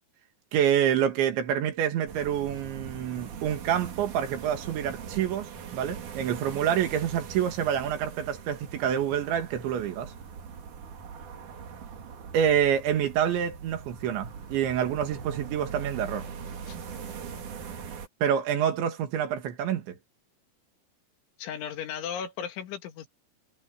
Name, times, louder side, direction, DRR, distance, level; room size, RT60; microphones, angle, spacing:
voice 1, 0.5-10.1 12.3-16.3 18.2-20.0, right 9 dB, 75° right, 4.3 m, -27 dB
sound 1, 2.1-18.1, right 6 dB, 50° right, 3.1 m, -41 dB
voice 2, 21.4-23.1, left 8 dB, 80° left, 4.5 m, -36 dB
omnidirectional pair, 5.4 m